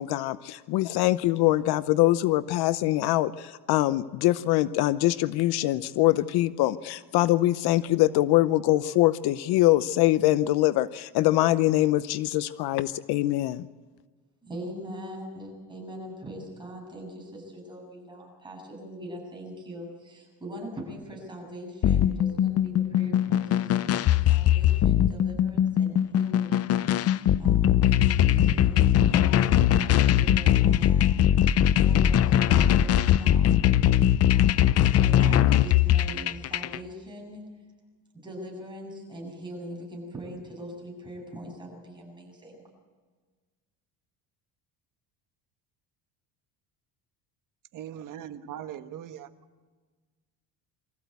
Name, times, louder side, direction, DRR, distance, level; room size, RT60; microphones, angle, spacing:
voice 1, 0.0-13.7, left 16 dB, 70° left, 15 dB, 0.8 m, -23 dB
voice 2, 14.4-26.6 27.4-31.1 31.7-33.5 34.3-37.5 38.1-42.6, equal, 10° right, -1 dB, 7.8 m, -42 dB
sound 1, 21.8-36.8, left 11 dB, 40° left, 0.5 m, -21 dB
voice 3, 47.7-49.3, right 10 dB, 50° right, 8 dB, 1.5 m, -40 dB
24.0 x 15.0 x 8.2 m, 1.4 s
cardioid pair, 140°, 40 cm